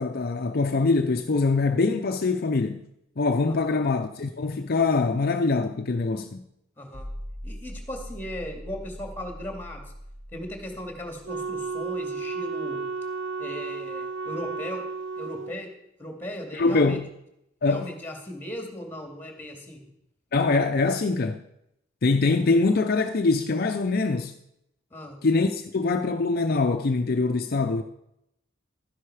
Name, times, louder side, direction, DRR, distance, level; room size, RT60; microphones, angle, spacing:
voice 1, 0.0-2.8 3.2-6.4 16.5-17.0 17.6-17.9 20.3-21.4 22.0-24.3 25.2-27.8, left 3 dB, 50° left, 0.6 m, -23 dB
voice 2, 3.5-3.8 6.8-7.1 7.4-9.8 10.3-12.8 13.4-14.8 15.1-15.7 16.0-17.0 17.6-19.8 24.9-25.2, left 1 dB, 10° left, 2.3 m, -37 dB
sound 1, 6.9-12.0, equal, 45° right, 3.6 m, -41 dB
Wind instrument woodwind instrument, 11.3-15.6, right 4 dB, 65° right, 0.5 m, -33 dB
12.5 x 10.0 x 4.9 m
head